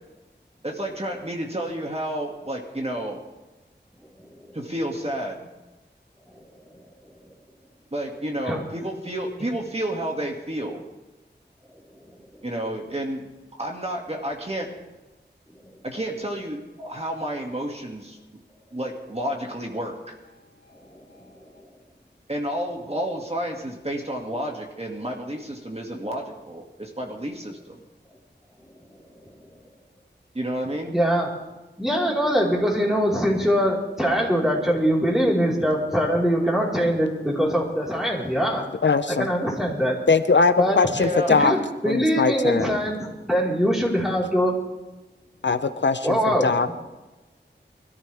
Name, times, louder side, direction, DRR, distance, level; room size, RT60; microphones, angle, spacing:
voice 1, 0.6-3.2 4.5-5.5 7.9-10.8 12.4-14.7 15.8-18.2 18.7-20.1 22.3-27.8 30.3-31.0 41.0-41.3, right 1 dB, 35° right, 0 dB, 2.4 m, -30 dB
voice 2, 30.9-31.3 31.8-38.7 39.1-39.9 40.6-40.8 41.4-41.6 41.8-44.5 46.0-46.5, equal, ahead, -4 dB, 4.6 m, -22 dB
voice 3, 38.8-39.3 40.1-41.5 41.9-42.7 45.4-46.8, left 4 dB, 80° left, 10 dB, 0.8 m, -21 dB
24.5 x 14.0 x 3.6 m, 1.1 s
wide cardioid pair, 60°, 19 cm